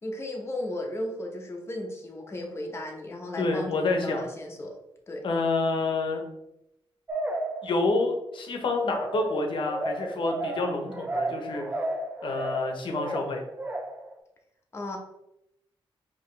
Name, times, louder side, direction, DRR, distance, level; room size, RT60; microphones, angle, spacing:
voice 1, 0.0-4.7 5.1-5.2 14.7-15.0, left 1 dB, 25° left, 1 dB, 0.8 m, -35 dB
voice 2, 3.4-4.2 5.2-6.2 7.6-11.6 12.2-13.4, left 3 dB, 60° left, 3 dB, 0.9 m, -28 dB
sound 1, 7.1-8.1 8.8-14.1, right 2 dB, 20° right, 0.5 m, -33 dB
4.7 x 2.9 x 3.1 m, 0.84 s
wide cardioid pair, 115°, 9 cm